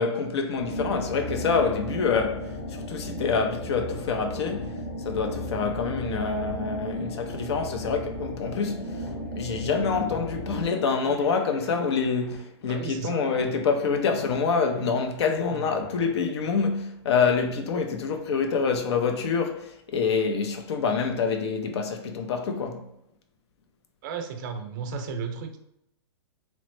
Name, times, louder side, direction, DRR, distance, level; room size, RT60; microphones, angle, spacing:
voice 1, 0.0-4.8 5.1-9.0 9.3-22.9, left 5 dB, 70° left, 0.5 m, -26 dB
sound 1, 0.6-10.7, equal, 55° left, 1.0 m, -35 dB
sound 2, 8.8-17.8, equal, 10° left, 0.5 m, -46 dB
voice 2, 12.7-13.3 24.0-25.6, right 5 dB, 45° right, 0.4 m, -34 dB
2.9 x 2.1 x 3.1 m
hypercardioid pair, 145°, 14 cm